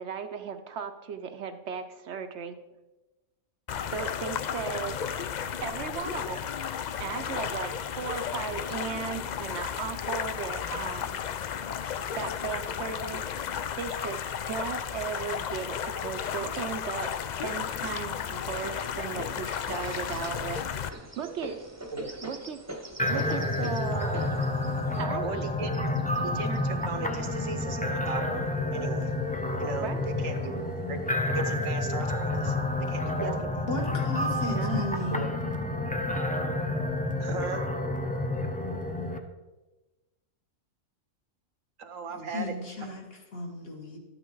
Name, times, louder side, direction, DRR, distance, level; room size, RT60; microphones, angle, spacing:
voice 1, 0.0-2.6 3.9-5.0 5.6-6.5 7.0-11.2 12.1-13.2 13.5-21.6 22.2-22.6 23.1-24.3 25.0-25.5 29.8-30.1 33.2-33.4 34.6-34.9, right 7 dB, 65° right, 8 dB, 0.9 m, -36 dB
sound 1, 3.7-20.9, left 8 dB, 85° left, 0.4 m, -33 dB
sound 2, 18.2-28.4 29.1-30.0 30.4-30.5 30.8-31.5 32.3-32.4 33.0-33.4, right 1 dB, 15° right, 0.9 m, -44 dB
sound 3, 23.0-39.2, left 2 dB, 10° left, 0.5 m, -29 dB
voice 2, 25.2-25.9 26.2-28.4 28.7-29.1 29.6-29.9 30.2-31.0 31.3-32.6 32.9-33.5 35.1-35.4 37.2-37.6 41.8-42.5, right 5 dB, 85° right, 7 dB, 1.4 m, -37 dB
voice 3, 33.7-35.2 42.1-44.0, left 1 dB, 50° left, 1 dB, 1.8 m, -35 dB
12.5 x 9.1 x 3.9 m, 1.1 s
omnidirectional pair, 1.3 m